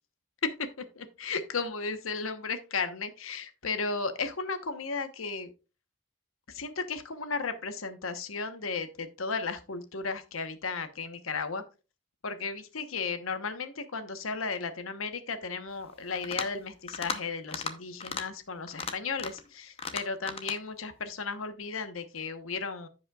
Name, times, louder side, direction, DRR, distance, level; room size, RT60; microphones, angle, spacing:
voice 1, 1.0-5.5 6.5-11.6 12.2-22.9, left 4 dB, 85° left, 10 dB, 1.1 m, -34 dB
sound 1, 16.1-16.6 16.9-17.2 17.5-17.7 18.0-18.2 18.7-19.5 19.8-20.6, left 5 dB, 30° left, 0.8 m, -36 dB
15.0 x 5.4 x 2.4 m, 0.31 s
head